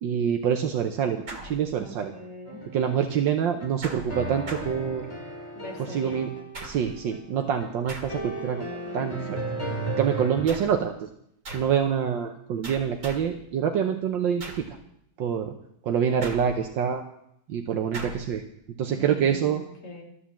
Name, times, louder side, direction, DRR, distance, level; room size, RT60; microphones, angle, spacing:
voice 1, 0.0-2.1 2.7-5.1 5.8-6.3 6.6-9.4 10.0-11.1 11.5-14.7 15.2-15.5 15.9-17.0 17.5-18.4 18.8-19.6, right 8 dB, 75° right, 4 dB, 1.6 m, -26 dB
sound 1, 1.3-2.1 3.8-5.3 6.5-7.1 7.9-8.5 10.5-10.9 11.5-11.9 12.6-13.4 14.4-14.8 16.2-16.9 17.9-18.4, right 2 dB, 40° right, 2.4 m, -41 dB
voice 2, 1.8-2.6 5.6-6.2 18.9-20.0, left 2 dB, 60° left, 0 dB, 3.3 m, -42 dB
sound 2, 2.5-10.6, right 2 dB, 15° left, 2.1 m, -35 dB
12.5 x 10.5 x 7.3 m, 0.74 s
omnidirectional pair, 2.1 m